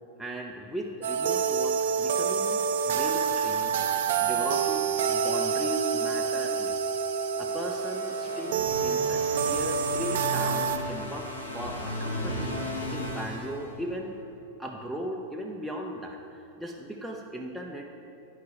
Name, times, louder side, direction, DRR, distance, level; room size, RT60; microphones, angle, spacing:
voice 1, 0.2-3.7 4.2-7.0 7.4-14.1 14.6-17.9, equal, ahead, -2 dB, 0.6 m, -37 dB
sound 1, 1.0-10.8, right 6 dB, 55° right, 0.5 m, -27 dB
sound 2, 7.3-14.2, equal, 75° left, 1.2 m, -36 dB
10.5 x 4.7 x 4.7 m, 2.7 s
figure-of-eight pair, 90°, 0 cm